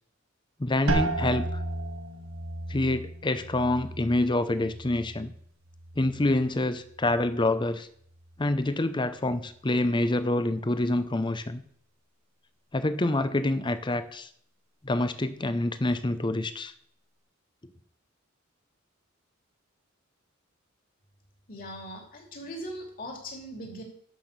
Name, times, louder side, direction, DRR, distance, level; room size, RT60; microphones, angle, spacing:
voice 1, 0.6-1.6 2.7-5.3 6.0-7.9 8.4-11.6 12.7-14.3 14.8-16.7, left 1 dB, 25° left, 12 dB, 0.7 m, -27 dB
sound 1, 0.9-6.5 6.8-7.5 8.1-8.5, right 2 dB, 75° right, 1.6 m, -34 dB
voice 2, 21.5-23.8, equal, 45° left, 2 dB, 3.0 m, -40 dB
12.0 x 5.9 x 6.8 m, 0.63 s
head